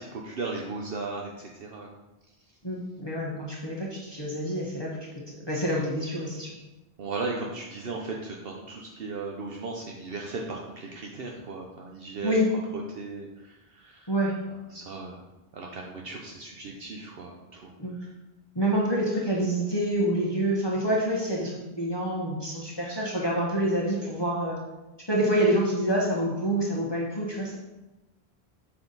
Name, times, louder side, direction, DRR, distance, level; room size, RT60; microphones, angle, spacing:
voice 1, 0.0-1.9 7.0-12.3 12.7-14.1 14.7-15.2 15.5-17.7 18.0-18.1, right 3 dB, 65° right, 0 dB, 0.9 m, -36 dB
voice 2, 2.6-5.0 5.5-6.5 12.2-12.5 14.1-14.4 17.8-17.9 18.5-24.6 25.1-27.6, right 1 dB, 25° left, -4 dB, 1.2 m, -27 dB
6.9 x 5.6 x 4.0 m, 1.0 s
omnidirectional pair, 1.1 m